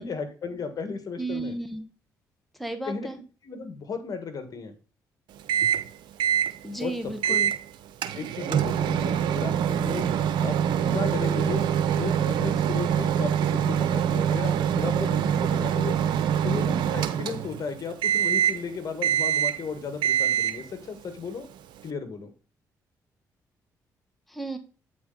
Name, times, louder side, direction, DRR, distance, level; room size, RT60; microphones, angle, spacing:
voice 1, 0.0-1.5 2.8-3.1 3.4-4.7 6.8-7.4 8.1-10.1 10.4-16.0 16.4-21.5 21.8-22.3, left 5 dB, 50° left, 8 dB, 1.6 m, -35 dB
voice 2, 1.2-1.9 2.6-3.2 6.6-7.5 24.3-24.6, right 2 dB, ahead, 7 dB, 1.2 m, -33 dB
Microwave oven, 5.5-5.9 6.2-6.5 7.2-7.6 8.0-17.7 18.0-18.7 19.0-19.7 20.0-20.7, right 9 dB, 75° right, 0.6 m, -24 dB
8.5 x 4.2 x 3.9 m, 0.35 s
supercardioid pair, 60°, 8 cm